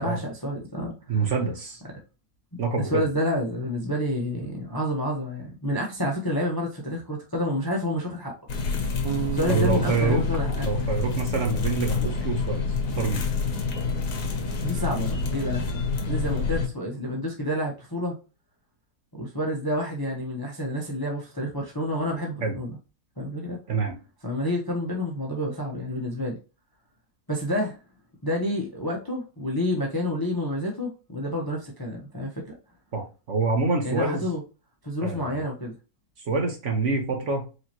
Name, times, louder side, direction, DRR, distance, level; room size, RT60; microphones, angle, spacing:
voice 1, 0.0-1.2 2.9-8.3 9.3-10.7 14.6-15.7 16.0-18.2 19.1-22.7 23.2-23.6 24.2-26.4 27.3-27.8 28.2-32.5 33.8-34.4 34.8-35.7, left 1 dB, 20° left, 0.7 m, -29 dB
voice 2, 1.1-1.8 2.6-3.0 9.5-10.2 10.6-13.3 22.4-22.5 23.7-24.0 32.9-34.2 35.0-35.4 36.3-37.6, right 4 dB, 50° right, 1.3 m, -26 dB
sound 1, 8.5-16.7, left 4 dB, 75° left, 1.6 m, -28 dB
Bass guitar, 9.0-12.1, right 12 dB, 70° right, 1.0 m, -35 dB
4.8 x 3.0 x 2.9 m
omnidirectional pair, 1.7 m